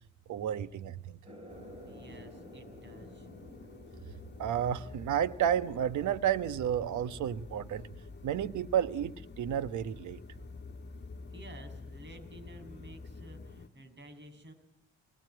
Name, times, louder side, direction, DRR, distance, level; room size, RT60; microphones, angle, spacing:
voice 1, 0.3-1.2 4.4-7.9 8.2-10.2, right 9 dB, 75° right, 12 dB, 1.2 m, -31 dB
sound 1, 1.2-8.4, equal, 20° right, 4.9 m, -54 dB
sound 2, 1.5-13.7, left 5 dB, 35° left, 2.0 m, -52 dB
voice 2, 1.8-3.3 11.3-14.5, right 1 dB, 35° right, 8 dB, 6.7 m, -52 dB
sound 3, 3.9-13.6, left 2 dB, 5° left, 5.0 m, -50 dB
27.0 x 20.5 x 9.3 m, 0.82 s
cardioid pair, 90°, 30 cm